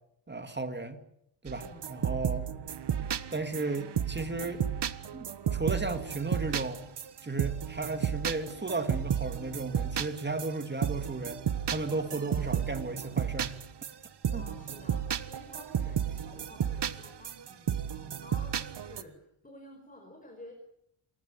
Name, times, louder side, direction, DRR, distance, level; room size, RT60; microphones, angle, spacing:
voice 1, 0.3-1.0 1.4-2.5 3.3-4.6 5.1-6.8 7.2-11.4 11.7-13.5 14.3-14.5, right 3 dB, 20° right, 7 dB, 2.3 m, -34 dB
sound 1, 1.5-19.0, right 9 dB, 55° right, 1.4 m, -33 dB
voice 2, 1.6-2.6 14.3-20.6, left 1 dB, 15° left, 4 dB, 5.5 m, -52 dB
28.0 x 16.0 x 9.4 m, 0.77 s
wide cardioid pair, 120°, 49 cm